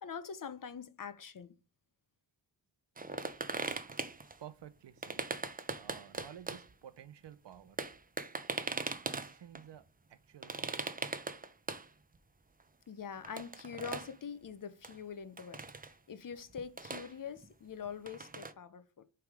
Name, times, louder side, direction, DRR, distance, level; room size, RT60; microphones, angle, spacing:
voice 1, 0.0-1.5 12.9-19.0, left 7 dB, 45° left, 0.7 m, -44 dB
sound 1, 3.0-4.4 5.0-6.7 7.3-7.4 7.5-9.6 10.4-11.9 12.1-12.2 12.6-12.7 13.2-14.2 14.8-15.0 15.4-15.9 16.3-17.5 17.8-18.5, right 3 dB, 20° right, 0.5 m, -40 dB
voice 2, 4.4-5.2 5.8-7.8 9.1-9.8 10.1-10.8, right 10 dB, 65° right, 0.7 m, -52 dB
6.4 x 3.5 x 4.9 m
wide cardioid pair, 115°, 45 cm